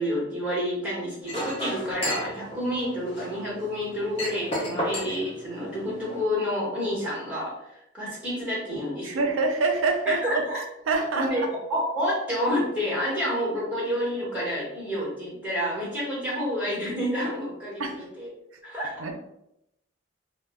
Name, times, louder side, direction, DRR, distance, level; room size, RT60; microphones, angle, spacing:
voice 1, 0.0-9.2 10.1-10.6 11.1-11.4 11.7-18.3 18.6-19.0, equal, 5° right, -7 dB, 1.0 m, -29 dB
Chink clink, 1.2-6.2, equal, 30° left, 0.8 m, -34 dB
voice 2, 9.0-10.4 10.9-11.5 17.8-18.0 19.0-19.2, right 3 dB, 75° right, 4 dB, 0.4 m, -25 dB
2.2 x 2.0 x 3.4 m, 0.82 s
head